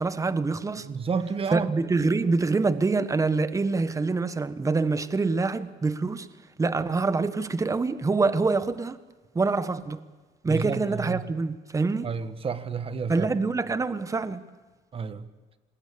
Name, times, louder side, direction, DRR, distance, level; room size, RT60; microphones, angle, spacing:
voice 1, 0.0-0.9 1.5-6.3 6.6-9.0 9.3-10.0 10.4-12.1 13.1-14.4, right 3 dB, 20° right, 1.3 m, -25 dB
voice 2, 0.8-2.1 10.4-11.2 12.0-13.3 14.9-15.3, right 5 dB, 35° right, 1.6 m, -31 dB
27.0 x 20.5 x 8.6 m
cardioid pair, 120°, 16 cm